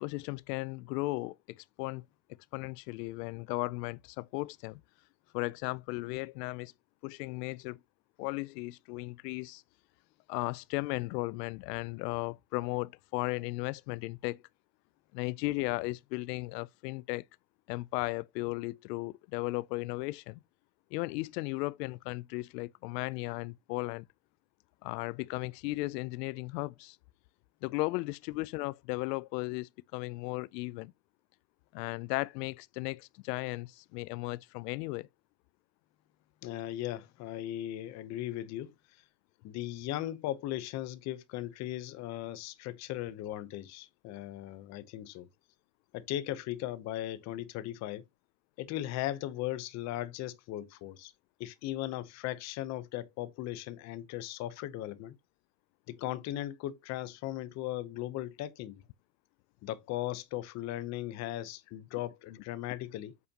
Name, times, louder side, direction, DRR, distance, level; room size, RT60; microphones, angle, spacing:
voice 1, 0.0-2.0 2.5-4.8 5.3-6.7 7.0-7.8 8.2-9.6 10.3-14.4 15.1-17.2 17.7-20.4 20.9-24.0 24.8-27.0 27.6-30.9 31.7-35.1, left 22 dB, 85° left, 0.6 m, -36 dB
voice 2, 36.4-38.7 39.4-45.3 45.9-48.0 48.6-51.1 51.4-55.1 55.9-58.8 59.6-63.1, left 14 dB, 35° left, 0.8 m, -37 dB
8.3 x 7.0 x 2.9 m
cardioid pair, 170°, 47 cm